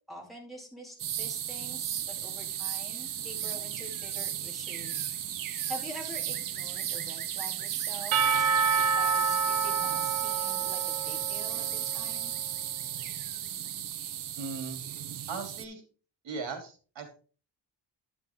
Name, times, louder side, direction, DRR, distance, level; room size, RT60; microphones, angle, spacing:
voice 1, 0.1-12.3, left 1 dB, ahead, -2 dB, 2.5 m, -46 dB
sound 1, 1.0-15.6, right 11 dB, 45° right, 0.5 m, -34 dB
Percussion / Church bell, 8.1-12.1, right 5 dB, 80° right, 0.8 m, -28 dB
voice 2, 14.4-14.9 15.3-15.8 16.2-17.1, right 4 dB, 65° right, 4 dB, 2.9 m, -38 dB
10.0 x 6.2 x 3.6 m, 0.38 s
wide cardioid pair, 180°, 46 cm